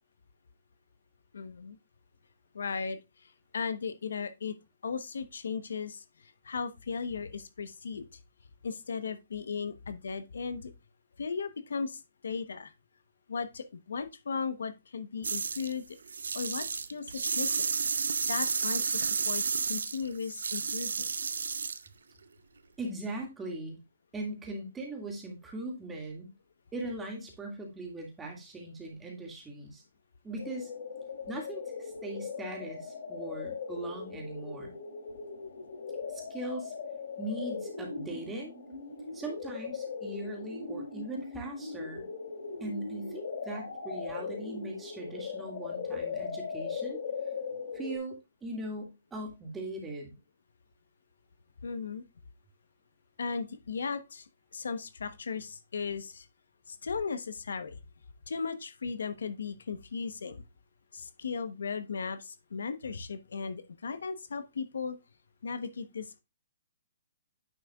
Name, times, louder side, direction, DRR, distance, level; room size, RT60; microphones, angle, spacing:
voice 1, 1.3-1.8 2.5-3.0 3.5-4.5 4.8-6.0 6.4-8.1 8.6-10.7 11.2-12.7 13.3-16.0 16.3-17.7 18.3-19.4 19.7-21.4 51.6-52.0 53.2-54.2 54.5-56.3 56.7-57.8 58.3-60.4 60.9-65.0 65.4-66.2, left 5 dB, 85° left, 0.9 m, -36 dB
sound 1, 15.2-15.7 16.1-21.9, right 5 dB, 90° right, 0.6 m, -31 dB
voice 2, 22.8-23.8 24.1-26.3 26.7-29.8 30.2-30.7 31.3-34.7 36.1-36.7 37.2-38.6 39.1-42.1 42.6-47.0 47.7-50.2, right 2 dB, 10° right, 1.9 m, -40 dB
sound 2, 30.4-48.0, left 5 dB, 60° left, 2.6 m, -39 dB
9.0 x 6.3 x 2.3 m
hypercardioid pair, 160°, 0 cm